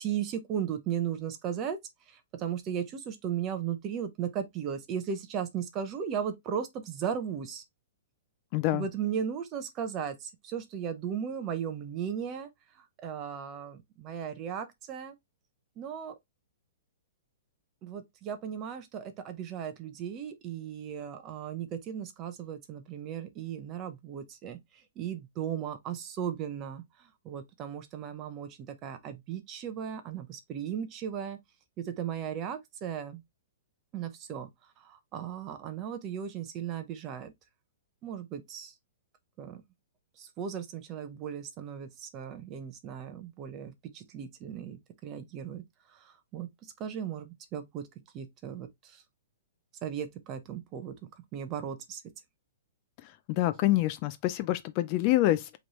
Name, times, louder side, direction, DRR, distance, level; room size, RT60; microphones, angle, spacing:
voice 1, 0.0-1.8 2.1-7.6 8.7-12.5 13.0-15.2 15.8-16.1 17.8-24.6 25.0-31.4 31.8-33.2 33.9-34.5 34.8-37.3 38.0-38.7 39.4-39.6 40.2-45.6 45.9-46.5 46.8-47.9 48.1-49.0 49.8-50.9 51.3-52.0, right 8 dB, 20° right, 0.7 m, -36 dB
voice 2, 8.5-8.8 53.3-55.6, left 15 dB, 30° left, 0.3 m, -26 dB
5.1 x 3.1 x 3.0 m
hypercardioid pair, 170°, 0 cm